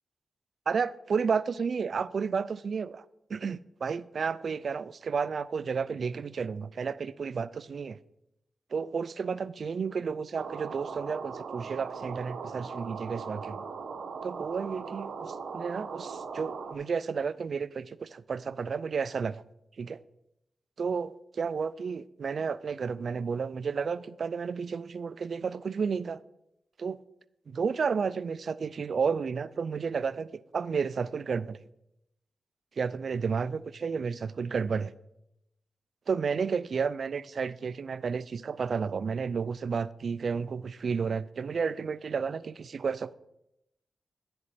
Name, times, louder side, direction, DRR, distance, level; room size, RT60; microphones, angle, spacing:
voice 1, 0.7-3.0 3.3-8.0 8.7-13.6 14.2-19.4 19.8-20.0 20.8-26.2 26.8-27.0 27.5-31.6 32.8-34.9 36.1-43.1, right 5 dB, 65° right, 0.3 m, -32 dB
sound 1, 10.3-16.7, right 5 dB, 85° right, 0.9 m, -39 dB
11.0 x 7.8 x 4.2 m
cardioid pair, 85°, 0 cm